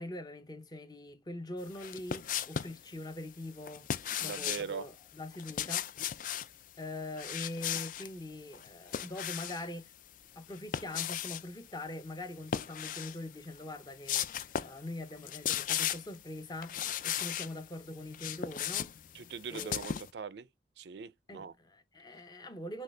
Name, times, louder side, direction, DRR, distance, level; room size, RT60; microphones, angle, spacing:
voice 1, 0.0-3.9 4.2-5.9 6.8-9.9 10.4-18.9 19.5-19.8 21.3-22.8, left 1 dB, 20° left, 0.7 m, -43 dB
sound 1, 1.7-2.8 3.7-4.7 5.3-6.5 7.1-8.1 8.5-9.7 10.5-11.4 12.4-13.2 13.6-13.7 14.1-14.8 15.1-16.2 16.6-17.5 18.0-20.1, left 10 dB, 45° left, 0.3 m, -36 dB
voice 2, 4.2-4.9 19.1-20.5 20.8-21.5, right 6 dB, 65° right, 0.4 m, -41 dB
6.4 x 2.4 x 3.2 m
head